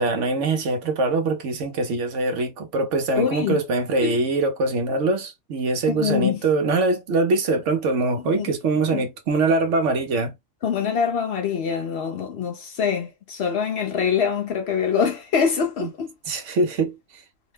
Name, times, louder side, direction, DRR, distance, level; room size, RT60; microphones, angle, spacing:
voice 1, 0.0-10.3 15.8-15.9 16.3-17.0, right 3 dB, 65° right, 1.0 m, -23 dB
voice 2, 3.1-3.6 4.0-4.2 5.9-6.4 8.4-8.5 8.9-9.1 10.6-16.1, left 7 dB, 60° left, 0.8 m, -24 dB
2.8 x 2.1 x 3.3 m
omnidirectional pair, 1.4 m